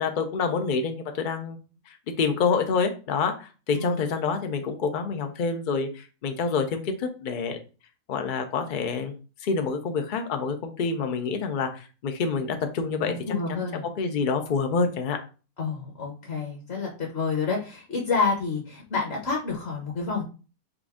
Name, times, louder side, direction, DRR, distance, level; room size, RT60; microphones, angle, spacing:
voice 1, 0.0-1.6 2.2-7.6 8.1-9.1 9.4-13.1 13.5-13.6 14.0-15.2, left 5 dB, 80° left, 6 dB, 0.4 m, -27 dB
voice 2, 13.1-13.8 15.6-20.2, left 4 dB, 50° left, -1 dB, 1.1 m, -29 dB
4.7 x 2.5 x 3.5 m, 0.35 s
omnidirectional pair, 1.6 m